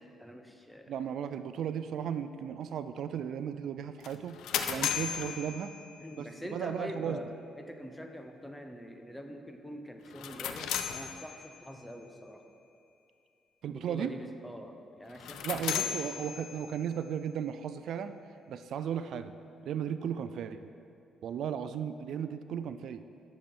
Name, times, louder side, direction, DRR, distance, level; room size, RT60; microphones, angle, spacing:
voice 1, 0.0-0.9 4.8-5.1 6.0-12.4 13.6-16.0, equal, 5° left, 5 dB, 0.8 m, -45 dB
voice 2, 0.9-4.4 4.7-5.7 6.2-7.2 13.6-14.1 15.4-18.2 18.5-19.3 19.6-20.7 21.2-23.0, right 8 dB, 70° right, 11 dB, 0.3 m, -35 dB
sound 1, 4.0-6.3 10.1-11.7 15.1-16.9, left 9 dB, 80° left, 0.5 m, -36 dB
10.5 x 6.8 x 4.4 m, 2.6 s
cardioid pair, 90°, 0 cm